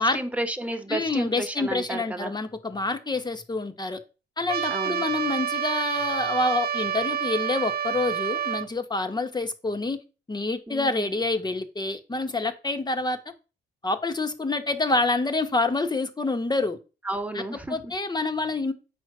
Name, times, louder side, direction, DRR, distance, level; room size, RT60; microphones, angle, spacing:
voice 1, 0.0-2.3 4.7-5.0 10.7-11.1 17.0-17.8, right 1 dB, 5° right, 1.7 m, -32 dB
voice 2, 0.9-4.0 4.4-10.0 10.3-13.2 13.8-16.8 17.3-17.4 17.7-18.7, left 3 dB, 20° left, 1.5 m, -27 dB
Trumpet, 4.5-8.7, right 9 dB, 50° right, 0.9 m, -28 dB
8.4 x 4.6 x 6.2 m
cardioid pair, 90°, 20 cm